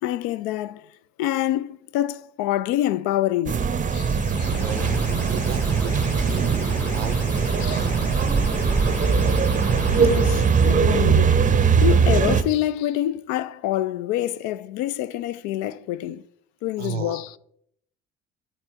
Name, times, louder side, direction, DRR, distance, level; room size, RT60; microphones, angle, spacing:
voice 1, 0.0-0.9 1.2-4.6 7.6-7.9 10.0-16.2 16.6-17.3, left 13 dB, 55° left, 0.5 m, -27 dB
sound 1, 3.5-12.4, right 6 dB, 20° right, 0.7 m, -20 dB
sound 2, 3.9-10.7, left 1 dB, 75° left, 3.9 m, -34 dB
voice 2, 4.2-7.3 16.8-17.2, right 6 dB, 80° right, 0.7 m, -34 dB
7.9 x 4.1 x 6.8 m
figure-of-eight pair, 55°, 36 cm